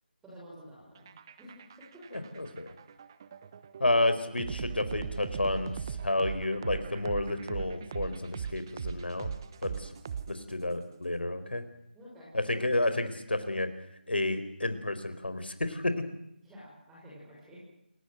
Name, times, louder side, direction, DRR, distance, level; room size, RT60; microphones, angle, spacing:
voice 1, 0.2-1.1 1.4-1.7 2.1-2.2 11.9-12.3 16.4-17.6, equal, 5° right, -7 dB, 6.6 m, -50 dB
sound 1, 1.0-10.7, right 7 dB, 20° right, 1.1 m, -39 dB
voice 2, 3.8-9.3 9.6-9.9 10.3-11.6 12.3-13.7 14.1-16.0, left 2 dB, 75° left, 11 dB, 4.5 m, -30 dB
28.5 x 16.5 x 9.3 m, 0.79 s
figure-of-eight pair, 165°, 6 cm